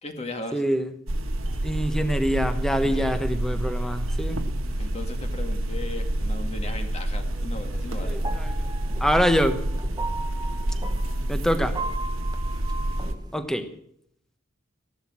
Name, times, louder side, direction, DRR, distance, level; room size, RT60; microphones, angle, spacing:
voice 1, 0.0-0.6 2.8-3.2 4.8-8.2, left 2 dB, 30° left, 4 dB, 2.0 m, -37 dB
voice 2, 0.5-0.9 1.6-4.4 7.7-8.5 9.0-9.7 11.3-11.8 13.3-13.7, equal, ahead, 9 dB, 1.2 m, -25 dB
sound 1, 1.1-13.2, right 1 dB, 85° right, 1.5 m, -28 dB
sound 2, 8.1-13.4, right 3 dB, 20° right, 1.2 m, -37 dB
15.5 x 11.5 x 7.4 m, 0.70 s
head